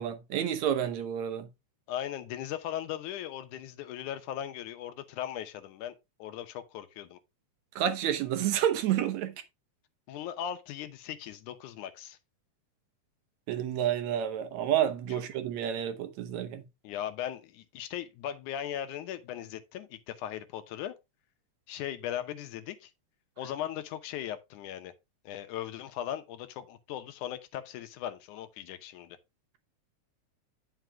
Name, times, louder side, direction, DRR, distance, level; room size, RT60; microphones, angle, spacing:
voice 1, 0.0-1.5 7.8-9.4 13.5-16.7, right 10 dB, 70° right, 2.1 m, -29 dB
voice 2, 1.9-7.2 10.1-12.2 16.8-20.9 21.7-22.9 23.4-24.9 25.3-29.2, left 11 dB, 85° left, 2.4 m, -38 dB
9.1 x 5.9 x 3.4 m
omnidirectional pair, 3.4 m